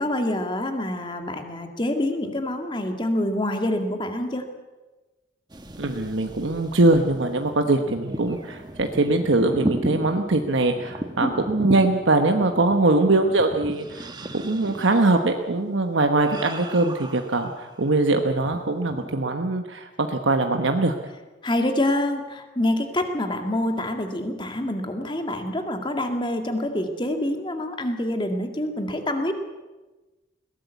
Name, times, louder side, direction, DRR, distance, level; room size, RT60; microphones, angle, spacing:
voice 1, 0.0-4.5 11.2-11.3 21.4-29.3, left 1 dB, 25° left, 5 dB, 2.0 m, -26 dB
sound 1, 5.5-17.9 18.3-19.1, right 1 dB, 20° right, 1.3 m, -35 dB
voice 2, 5.8-14.1 14.4-20.9, right 2 dB, 75° right, 5 dB, 1.2 m, -22 dB
21.0 x 17.5 x 8.3 m, 1.2 s
head